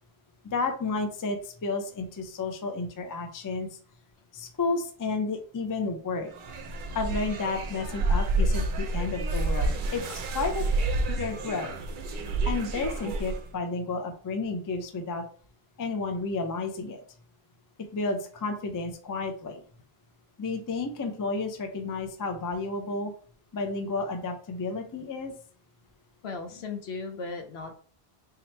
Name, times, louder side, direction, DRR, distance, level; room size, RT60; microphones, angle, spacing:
voice 1, 0.5-3.7 4.3-6.3 6.9-10.0 10.3-10.6 11.1-11.7 12.5-15.2 15.8-17.0 17.9-19.6 20.4-23.1 23.5-25.3, left 3 dB, 30° left, 5 dB, 0.3 m, -31 dB
sound 1, 6.3-13.5, right 2 dB, 60° right, 0.7 m, -29 dB
voice 2, 26.2-27.7, left 4 dB, 80° left, 5 dB, 1.0 m, -36 dB
3.6 x 2.9 x 3.2 m, 0.43 s
omnidirectional pair, 1.1 m